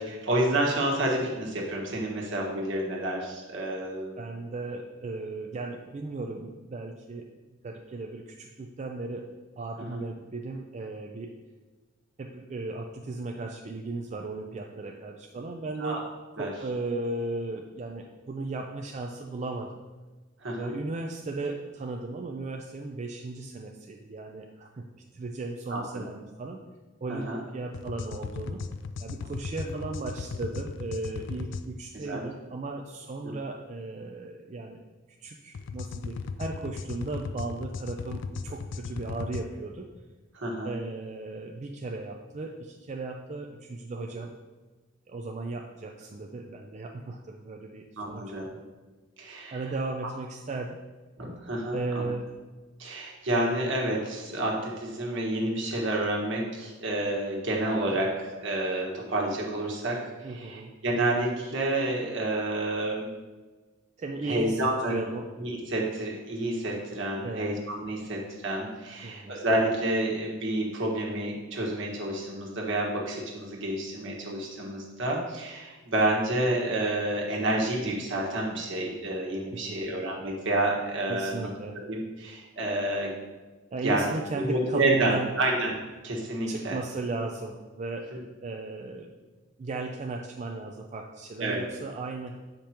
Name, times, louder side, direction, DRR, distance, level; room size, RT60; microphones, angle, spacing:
voice 1, 0.1-4.2 15.8-16.0 16.4-16.5 20.4-20.7 25.7-25.8 27.1-27.4 31.9-32.2 33.2-33.3 40.3-40.7 48.0-48.5 49.2-49.6 51.2-52.1 52.8-63.1 64.2-64.9 65.4-83.2 83.8-85.8 86.0-86.8 91.4-91.6, right 1 dB, 65° right, -2 dB, 1.4 m, -29 dB
voice 2, 4.2-11.3 12.2-16.0 16.4-19.8 20.6-24.8 25.1-26.6 27.0-28.6 29.0-34.8 35.2-39.9 40.6-44.3 45.1-48.5 49.5-50.8 51.7-52.3 60.2-60.7 64.0-65.3 67.2-67.6 69.0-69.4 79.7-80.0 81.1-81.8 83.7-85.3 86.5-88.1 88.4-89.1 89.6-92.4, right 3 dB, 35° right, 1 dB, 0.4 m, -36 dB
sound 1, 27.7-31.6 35.5-39.4, left 4 dB, 65° left, 0.4 m, -36 dB
7.6 x 5.1 x 2.9 m, 1.2 s
head